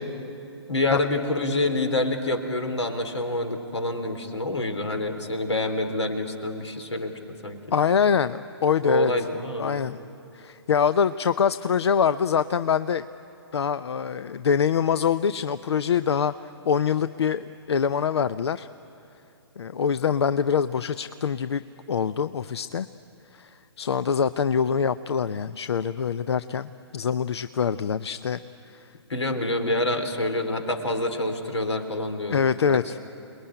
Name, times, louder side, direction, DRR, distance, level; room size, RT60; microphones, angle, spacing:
voice 1, 0.7-7.6 8.8-9.8 29.1-32.5, left 2 dB, 85° left, 6 dB, 3.5 m, -27 dB
voice 2, 7.7-9.1 9.6-10.0 10.3-13.0 13.5-16.3 16.6-18.7 19.6-21.6 21.9-22.9 23.3-28.4 28.7-28.9 32.3-33.0, left 7 dB, 70° left, 14 dB, 0.6 m, -24 dB
29.0 x 21.0 x 10.0 m, 2.8 s
hypercardioid pair, 135°, 14 cm